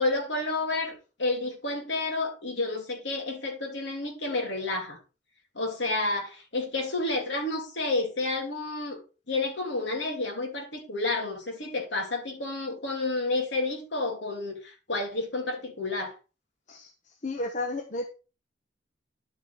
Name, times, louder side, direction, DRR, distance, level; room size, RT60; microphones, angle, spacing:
voice 1, 0.0-5.0 5.5-9.0 9.3-16.1, left 2 dB, 70° left, 3.0 m, -30 dB
voice 2, 17.2-18.1, left 2 dB, 40° left, 1.0 m, -32 dB
10.5 x 5.3 x 4.6 m
head